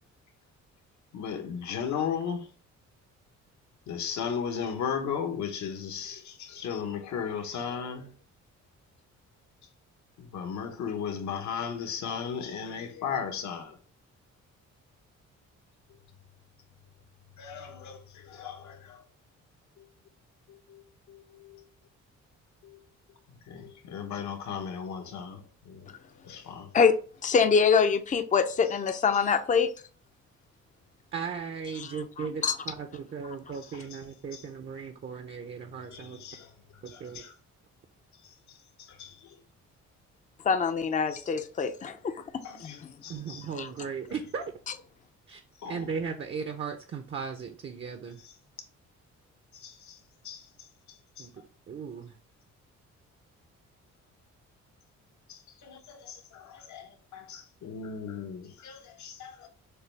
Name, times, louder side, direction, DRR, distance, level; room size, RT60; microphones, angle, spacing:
voice 1, 1.1-2.5 3.9-8.1 10.2-13.8 17.4-19.0 20.5-20.8 21.1-21.6 22.6-22.8 23.5-25.9 26.2-26.7 34.3-34.4 35.9-36.5 36.9-37.3 39.0-39.2 42.4-43.4 45.6-45.8 49.6-50.0 50.2-50.4 51.2-51.3 55.3-59.5, left 7 dB, 70° left, 1.1 m, -36 dB
voice 2, 27.2-29.7 31.8-31.9 32.2-32.6 40.4-42.0 42.6-42.7 43.6-43.7, left 6 dB, 25° left, 0.5 m, -24 dB
voice 3, 31.1-36.2 36.8-37.2 43.1-44.4 45.3-48.2 51.2-51.3 51.7-52.1, right 6 dB, 40° right, 0.7 m, -37 dB
6.6 x 2.3 x 3.4 m
cardioid pair, 90°, 30 cm